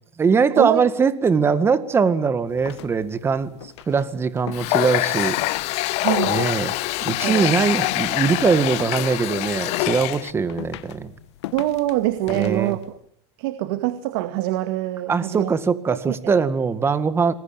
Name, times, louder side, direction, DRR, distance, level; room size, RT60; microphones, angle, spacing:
voice 1, 0.2-5.4 6.3-6.7 7.0-11.1 12.3-12.8 15.1-17.3, right 5 dB, 15° right, 13 dB, 2.0 m, -21 dB
sound 1, 2.4-13.0, left 15 dB, 75° left, 1.5 m, -40 dB
Water tap faucet, 4.5-10.3, left 19 dB, 45° left, 1.3 m, -24 dB
voice 2, 6.0-6.4 7.2-7.5 11.5-12.9 13.4-15.5 15.9-16.3, right 15 dB, 60° right, 9 dB, 2.2 m, -24 dB
27.5 x 21.5 x 8.9 m, 0.66 s
supercardioid pair, 140°, 15 cm